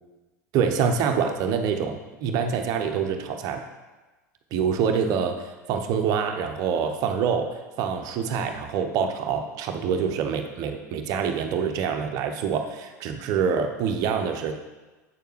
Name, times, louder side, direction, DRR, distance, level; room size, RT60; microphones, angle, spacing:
voice 1, 0.5-3.6 4.5-14.6, right 6 dB, 40° right, 6 dB, 0.8 m, -26 dB
8.9 x 6.8 x 3.2 m, 1.2 s
figure-of-eight pair, 80°, 9 cm